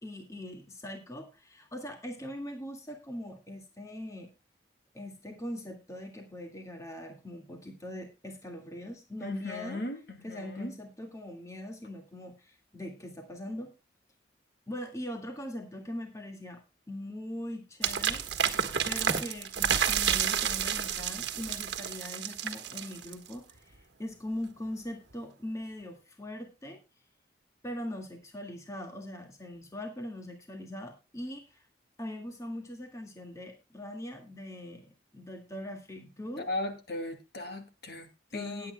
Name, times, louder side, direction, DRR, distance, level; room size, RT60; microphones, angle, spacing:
voice 1, 0.0-4.3 4.9-9.8 10.2-13.7 14.7-16.6 16.9-18.2 18.9-26.8 27.6-31.6 32.0-36.5 38.3-38.7, left 1 dB, 15° left, 3 dB, 1.9 m, -41 dB
voice 2, 9.2-10.0 10.3-10.7 36.4-38.7, left 2 dB, 60° left, 7 dB, 2.4 m, -37 dB
sound 1, 17.8-23.3, right 8 dB, 70° right, 1.4 m, -30 dB
20.0 x 8.6 x 2.2 m, 0.27 s
head